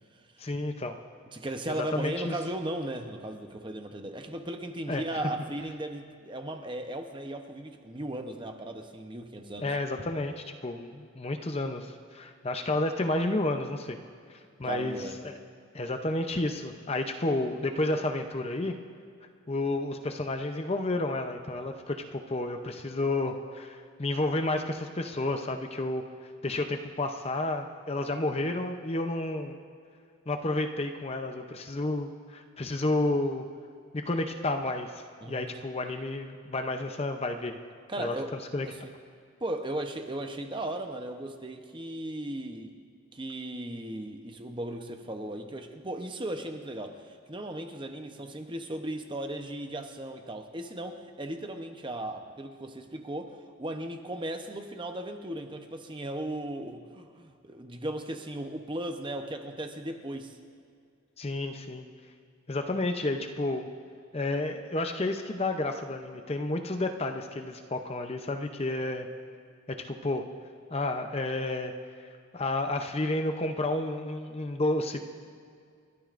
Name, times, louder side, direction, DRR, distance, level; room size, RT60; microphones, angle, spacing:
voice 1, 0.4-1.0 1.9-2.3 4.9-5.0 9.6-14.0 14.3-15.4 15.7-18.8 19.5-26.0 26.4-29.6 30.3-33.5 33.9-37.6 38.0-38.1 38.5-38.7 61.2-61.8 62.5-63.7 64.1-69.1 69.8-70.2 70.7-71.7 72.3-75.0, left 2 dB, 30° left, 5 dB, 0.6 m, -31 dB
voice 2, 1.3-9.7 14.6-15.2 35.2-35.5 37.9-38.3 38.6-38.9 39.4-42.7 43.1-60.4, right 1 dB, 20° right, 5 dB, 0.8 m, -36 dB
30.0 x 12.5 x 2.6 m, 2.3 s
head